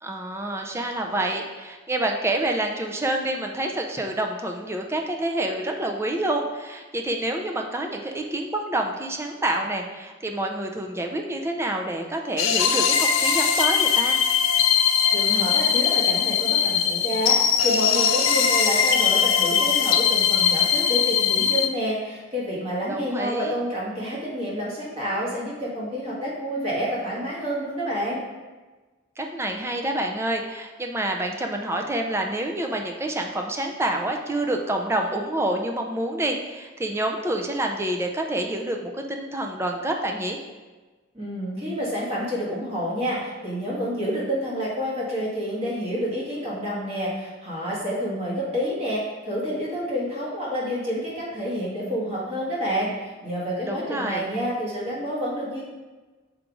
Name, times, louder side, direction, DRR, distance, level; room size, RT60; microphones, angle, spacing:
voice 1, 0.0-14.2 22.9-23.5 29.2-40.4 53.7-54.3, right 1 dB, 15° right, 3 dB, 0.4 m, -27 dB
sound 1, 12.4-21.7, left 7 dB, 90° left, 0.5 m, -21 dB
voice 2, 15.1-28.2 41.1-55.6, equal, 30° right, -6 dB, 1.7 m, -28 dB
6.0 x 4.8 x 3.8 m, 1.3 s
head